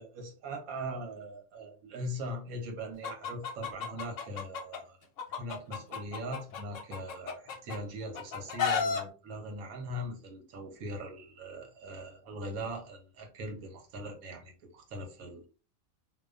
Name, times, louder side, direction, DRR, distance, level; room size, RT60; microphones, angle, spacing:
voice 1, 0.0-5.0 5.3-15.5, right 1 dB, 85° right, 3 dB, 1.1 m, -41 dB
Chicken rooster, 3.0-4.8 5.2-7.8 8.1-9.0, left 6 dB, 70° left, 0.9 m, -33 dB
2.4 x 2.2 x 2.3 m, 0.35 s
omnidirectional pair, 1.5 m